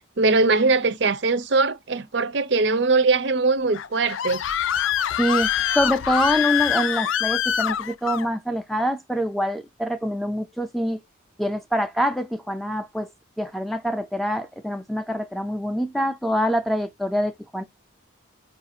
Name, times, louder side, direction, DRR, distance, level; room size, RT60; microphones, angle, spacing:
voice 1, 0.0-4.4, right 3 dB, 60° right, 0.6 m, -21 dB
Screaming, 3.7-8.3, left 9 dB, 80° left, 0.4 m, -24 dB
voice 2, 5.2-5.5 5.7-11.0 11.4-13.1 13.4-17.6, equal, ahead, 0.4 m, -25 dB
4.8 x 2.5 x 2.7 m
head